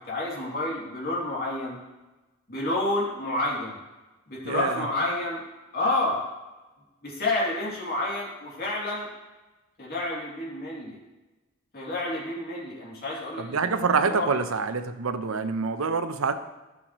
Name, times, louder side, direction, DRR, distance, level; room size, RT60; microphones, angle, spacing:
voice 1, 0.1-1.8 2.5-3.8 4.3-5.4 5.7-6.2 7.0-9.1 9.8-11.0 11.7-14.2, left 2 dB, 50° left, -4 dB, 2.7 m, -29 dB
voice 2, 4.4-4.8 13.4-16.3, right 5 dB, 80° right, 9 dB, 0.7 m, -26 dB
14.0 x 6.3 x 3.0 m, 1.1 s
head